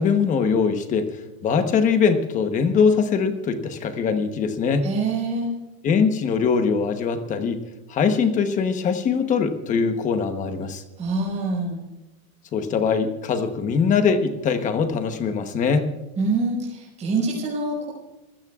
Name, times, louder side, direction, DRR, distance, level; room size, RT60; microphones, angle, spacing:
voice 1, 0.0-4.9 5.8-7.6 7.9-10.8 12.5-15.9, left 5 dB, 20° left, 8 dB, 1.0 m, -22 dB
voice 2, 4.8-5.5 11.0-11.8 16.2-17.9, right 3 dB, 15° right, -3 dB, 5.6 m, -25 dB
27.0 x 16.5 x 2.4 m, 1.0 s
supercardioid pair, 175°, 42 cm